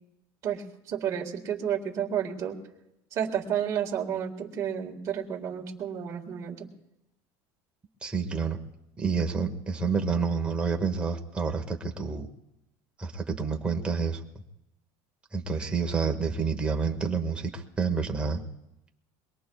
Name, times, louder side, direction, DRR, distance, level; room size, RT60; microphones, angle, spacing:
voice 1, 0.4-2.6 3.1-6.7, right 9 dB, 30° right, 0 dB, 1.7 m, -31 dB
voice 2, 8.0-8.6 9.0-12.3 13.0-14.2 15.3-18.4, right 5 dB, 10° right, 2 dB, 1.0 m, -28 dB
24.0 x 21.0 x 2.3 m, 0.87 s
cardioid pair, 180°, 10 cm